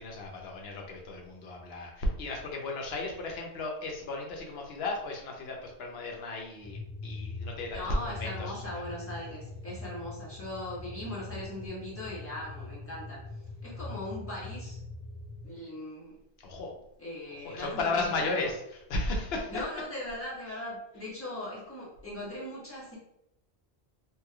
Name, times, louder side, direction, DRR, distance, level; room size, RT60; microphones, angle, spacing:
voice 1, 0.0-8.6 16.4-16.7 17.4-18.6 18.9-19.5, left 2 dB, 70° left, 1 dB, 0.9 m, -34 dB
sound 1, 6.6-15.5, left 3 dB, 30° left, 0.5 m, -42 dB
voice 2, 7.7-13.2 13.6-14.8 15.4-16.1 17.0-18.5 19.5-23.0, left 1 dB, 10° left, -8 dB, 1.2 m, -39 dB
3.2 x 3.0 x 2.3 m, 0.81 s
omnidirectional pair, 1.1 m